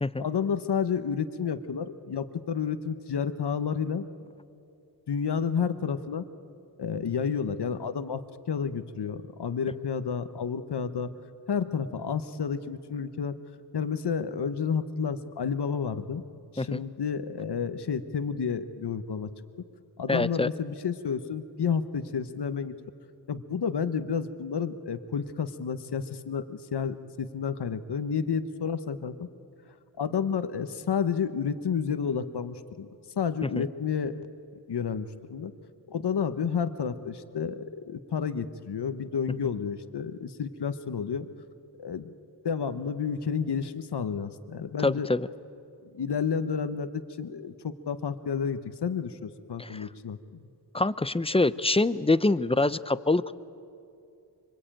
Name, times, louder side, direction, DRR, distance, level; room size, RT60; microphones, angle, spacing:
voice 1, 0.2-4.1 5.1-6.3 6.8-11.1 11.5-13.3 13.7-16.2 16.5-19.3 20.0-22.7 23.3-29.3 30.0-32.9 33.2-34.2 34.7-35.5 35.9-41.3 41.8-42.1 42.4-45.1 45.8-50.2, left 6 dB, 70° left, 11 dB, 1.1 m, -30 dB
voice 2, 20.1-20.5 33.4-33.7 44.8-45.3 49.6-49.9 50.7-53.4, left 2 dB, 15° left, 15 dB, 0.6 m, -25 dB
25.5 x 24.5 x 8.9 m, 2.6 s
wide cardioid pair, 90°, 42 cm